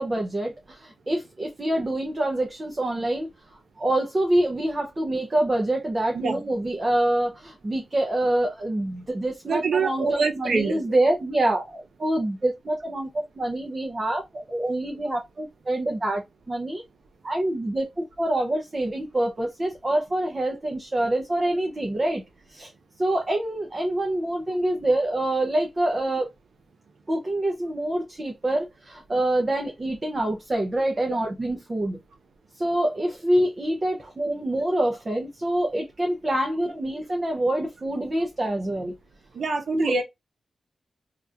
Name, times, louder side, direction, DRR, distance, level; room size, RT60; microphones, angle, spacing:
voice 1, 0.0-3.3 3.8-16.2 16.5-16.8 17.2-22.2 22.5-22.7 23.0-26.3 27.1-32.0 32.6-38.9 39.7-39.9, right 1 dB, 25° right, 0.6 m, -26 dB
voice 2, 9.5-10.8 39.3-40.0, right 4 dB, 80° right, 0.8 m, -25 dB
2.9 x 2.4 x 3.6 m
wide cardioid pair, 170°, 0 cm